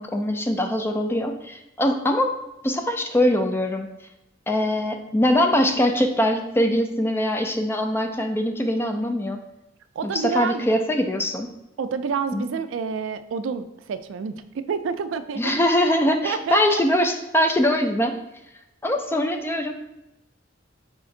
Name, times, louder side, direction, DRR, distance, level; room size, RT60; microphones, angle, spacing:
voice 1, 0.0-2.3 2.6-3.9 4.5-9.4 10.0-11.5 12.3-12.5 15.4-18.2 18.8-19.7, left 1 dB, 10° left, 5 dB, 0.3 m, -22 dB
voice 2, 10.0-10.7 11.8-15.6 16.2-16.8, right 6 dB, 80° right, 11 dB, 0.3 m, -28 dB
4.9 x 3.8 x 2.5 m, 0.92 s
head